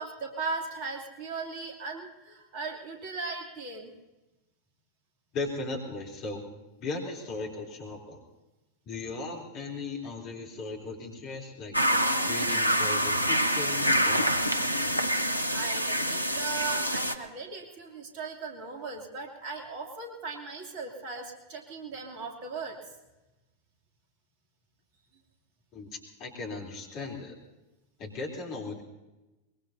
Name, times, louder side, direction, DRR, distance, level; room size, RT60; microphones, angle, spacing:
voice 1, 0.0-3.9 15.2-22.8, right 4 dB, 45° right, 1 dB, 2.9 m, -38 dB
voice 2, 5.3-6.5 6.8-8.2 8.9-11.7 12.3-14.7 25.7-27.4 28.0-28.8, left 3 dB, 40° left, 0 dB, 3.5 m, -37 dB
sound 1, 11.7-17.1, equal, 90° left, 0.7 m, -26 dB
23.0 x 22.0 x 2.8 m, 1.0 s
figure-of-eight pair, 90°, 0 cm